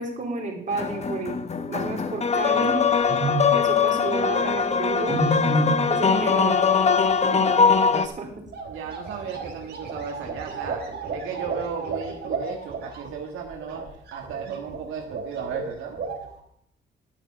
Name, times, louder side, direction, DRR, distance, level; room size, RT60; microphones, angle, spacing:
voice 1, 0.0-1.4 1.7-2.8 3.6-5.2 5.9-6.6 7.9-8.3, right 3 dB, 40° right, 0 dB, 3.3 m, -30 dB
sound 1, 0.7-8.1, left 5 dB, 35° left, 0.9 m, -22 dB
sound 2, 2.3-2.4 3.1-3.5 5.1-5.9 8.1-8.2 8.4-15.6 15.9-16.4, right 2 dB, 55° right, 3.3 m, -31 dB
voice 2, 2.5-3.6 5.0-5.5 7.2-7.7 8.7-10.9 11.1-16.0, right 7 dB, 85° right, 1 dB, 1.6 m, -35 dB
11.0 x 7.2 x 6.1 m, 0.71 s
cardioid pair, 90°, 20 cm